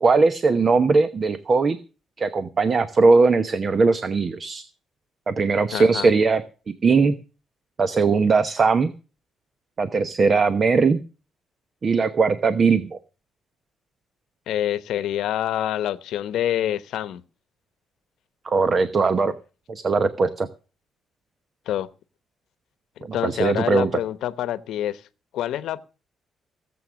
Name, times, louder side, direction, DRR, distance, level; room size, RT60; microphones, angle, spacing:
voice 1, 0.0-1.8 2.2-4.6 5.3-6.4 6.8-7.1 7.8-8.9 9.8-11.0 11.8-13.0 18.4-19.3 19.7-20.5 23.0-23.9, right 4 dB, 35° right, 0.9 m, -19 dB
voice 2, 5.7-6.1 14.5-17.2 21.7-21.9 23.0-25.0 25.3-25.8, left 12 dB, 80° left, 1.0 m, -26 dB
17.5 x 7.9 x 6.2 m
cardioid pair, 130°, 0 cm